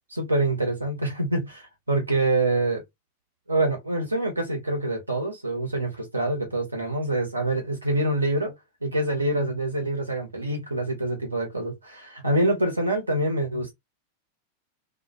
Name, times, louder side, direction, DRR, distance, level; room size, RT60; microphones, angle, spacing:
voice 1, 0.1-2.8 3.5-8.5 8.8-13.7, right 2 dB, 80° right, 0.9 m, -26 dB
2.5 x 2.1 x 2.5 m
figure-of-eight pair, 90°, 0 cm